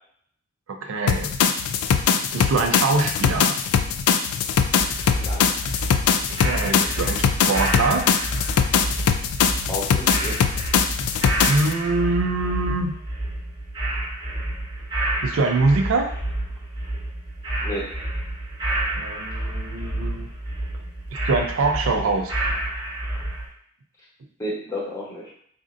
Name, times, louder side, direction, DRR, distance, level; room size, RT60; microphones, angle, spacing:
voice 1, 0.7-1.3 2.3-3.6 6.3-8.1 11.5-12.9 15.2-16.1 18.9-20.3 20.8-20.9 21.2-22.3, right 3 dB, 65° right, 3 dB, 0.4 m, -23 dB
sound 1, 1.1-11.7, left 7 dB, 85° left, 0.3 m, -21 dB
sound 2, 4.8-23.5, right 1 dB, 20° right, 0.9 m, -29 dB
voice 2, 5.2-5.5 9.7-10.4 17.6-17.9 24.4-25.3, left 1 dB, 15° left, -5 dB, 0.8 m, -31 dB
4.1 x 2.5 x 2.5 m, 0.63 s
head